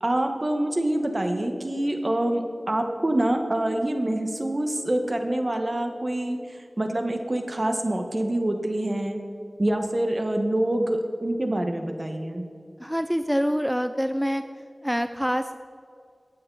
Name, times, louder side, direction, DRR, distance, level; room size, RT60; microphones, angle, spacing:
voice 1, 0.0-6.4 6.8-9.2 9.6-12.5, right 1 dB, 40° right, 5 dB, 1.3 m, -26 dB
voice 2, 12.8-14.4 14.8-15.6, equal, ahead, 9 dB, 0.4 m, -25 dB
14.5 x 8.9 x 4.0 m, 2.4 s
wide cardioid pair, 65°, 0 cm